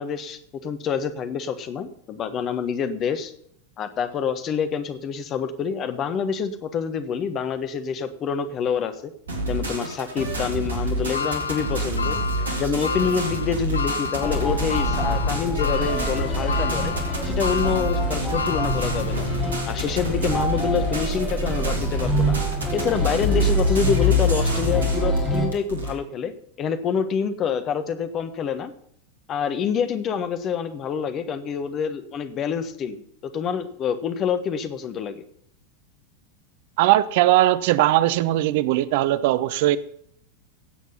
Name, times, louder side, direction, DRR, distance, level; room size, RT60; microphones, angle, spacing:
voice 1, 0.0-3.3 3.8-9.1 9.5-12.2 12.6-16.9 17.2-19.3 19.7-22.4 22.7-26.3 26.6-28.7 29.3-35.2, left 7 dB, 30° left, 1.4 m, -27 dB
sound 1, 9.3-25.9, right 2 dB, 70° right, 2.8 m, -28 dB
sound 2, 11.1-19.5 20.0-20.1 21.2-21.3, left 6 dB, 75° left, 0.8 m, -30 dB
sound 3, 14.2-25.5, left 1 dB, 15° left, 5.5 m, -25 dB
voice 2, 36.8-39.8, right 14 dB, 50° right, 0.6 m, -19 dB
16.0 x 8.2 x 5.6 m
figure-of-eight pair, 90°, 0 cm